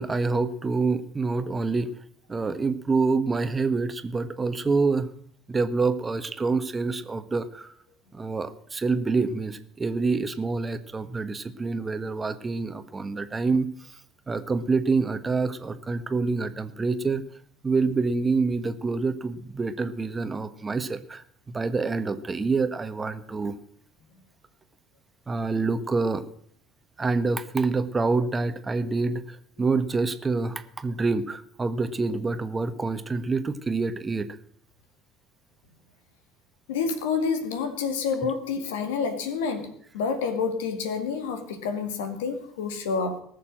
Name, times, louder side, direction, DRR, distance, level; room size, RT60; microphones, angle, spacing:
voice 1, 0.0-1.9 2.3-5.1 5.5-7.7 8.1-13.7 14.3-17.2 17.6-23.5 25.3-26.2 27.0-34.3, right 4 dB, 25° right, 10 dB, 1.3 m, -27 dB
voice 2, 36.7-43.2, left 5 dB, 75° left, 8 dB, 2.1 m, -28 dB
19.0 x 6.9 x 7.7 m, 0.62 s
hypercardioid pair, 65°, 0 cm